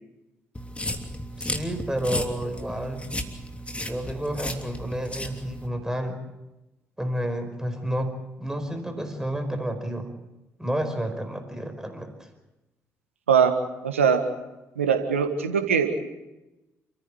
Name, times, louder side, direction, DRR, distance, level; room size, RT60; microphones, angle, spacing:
sound 1, 0.6-5.7, left 1 dB, 15° left, 3.1 m, -34 dB
voice 1, 1.4-3.0 3.9-6.2 7.0-10.1 10.6-12.3, equal, 10° right, 6 dB, 4.9 m, -30 dB
voice 2, 13.8-14.2 14.8-16.0, right 6 dB, 90° right, 7 dB, 1.7 m, -21 dB
29.5 x 14.5 x 8.0 m, 1.0 s
figure-of-eight pair, 40°, 7 cm